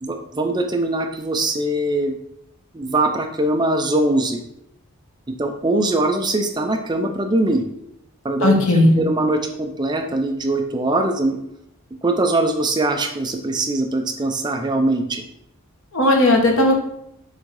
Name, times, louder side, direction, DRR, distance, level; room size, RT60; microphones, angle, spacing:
voice 1, 0.0-2.1 2.7-4.4 5.4-7.6 8.2-8.5 9.0-11.4 12.0-15.2, right 2 dB, 20° right, 4 dB, 0.5 m, -21 dB
voice 2, 8.4-9.0 15.9-16.8, left 1 dB, 65° left, 1 dB, 1.5 m, -15 dB
6.6 x 3.7 x 4.7 m, 0.77 s
head